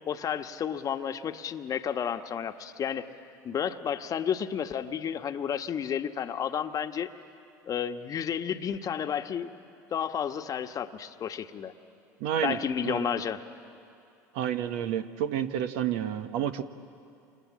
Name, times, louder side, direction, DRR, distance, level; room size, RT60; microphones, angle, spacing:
voice 1, 0.1-3.1 3.4-7.1 7.7-9.5 9.9-11.7 12.4-13.4, left 8 dB, 40° left, 8 dB, 1.3 m, -31 dB
voice 2, 12.2-12.6 12.8-13.0 14.3-16.6, right 10 dB, 65° right, 9 dB, 1.3 m, -29 dB
29.5 x 27.0 x 7.6 m, 2.6 s
hypercardioid pair, 75°, 9 cm